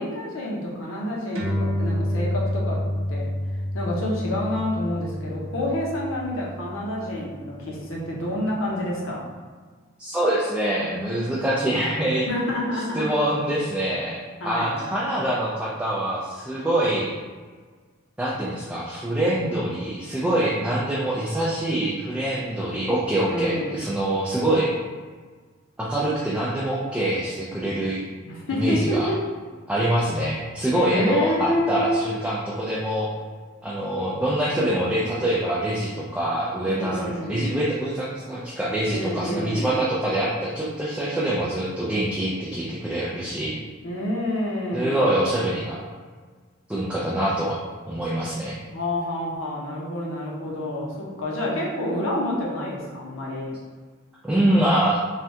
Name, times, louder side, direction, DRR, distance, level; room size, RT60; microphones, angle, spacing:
voice 1, 0.0-2.8 3.1-3.3 3.7-9.3 12.3-13.1 14.4-14.8 23.3-23.8 28.2-29.2 30.8-32.1 36.6-37.5 38.9-39.8 43.8-45.2 48.7-53.5, left 1 dB, 70° left, -3 dB, 0.7 m, -28 dB
sound 1, 1.3-8.2, left 1 dB, 75° right, 0.6 m, -29 dB
voice 2, 10.0-12.3 12.9-17.1 18.2-24.7 25.8-28.0 28.5-29.1 29.7-33.1 33.6-43.6 44.7-45.8 46.7-47.6 47.8-48.6 54.2-55.0, right 1 dB, 5° right, -7 dB, 0.3 m, -25 dB
3.2 x 2.3 x 2.7 m, 1.5 s
head